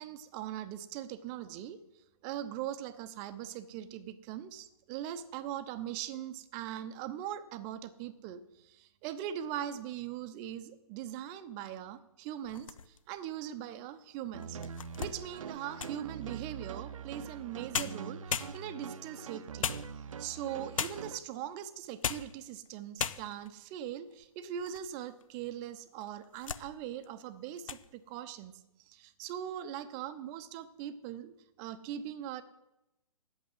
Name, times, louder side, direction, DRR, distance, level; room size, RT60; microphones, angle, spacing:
voice 1, 0.0-1.8 2.2-14.6 15.0-19.7 20.2-28.5 28.8-32.4, right 10 dB, 20° right, 12 dB, 0.7 m, -41 dB
sound 1, 12.4-13.2 13.8-13.9 14.4-16.1 17.4-17.5 17.7-18.9 19.6-20.3 20.8-21.2 21.8-22.4 22.7-22.8 23.0-23.5 24.1-24.9 25.2-25.3 26.0-26.7 27.0-27.3 27.6-27.9, left 7 dB, 60° left, 0.7 m, -37 dB
sound 2, 14.3-21.2, right 6 dB, 60° right, 0.7 m, -43 dB
9.5 x 8.4 x 7.7 m, 0.92 s
figure-of-eight pair, 135°, 19 cm